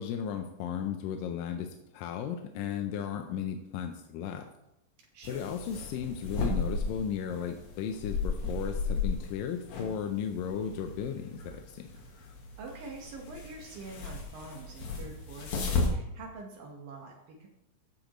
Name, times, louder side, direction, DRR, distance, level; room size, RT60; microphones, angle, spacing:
voice 1, 0.0-4.4 5.3-11.9, left 8 dB, 80° left, 5 dB, 2.4 m, -35 dB
voice 2, 5.0-5.5 12.6-17.5, right 3 dB, 75° right, -1 dB, 3.1 m, -45 dB
sound 1, 5.2-15.9, left 4 dB, 55° left, 2.6 m, -35 dB
15.0 x 8.9 x 3.1 m, 0.87 s
omnidirectional pair, 4.1 m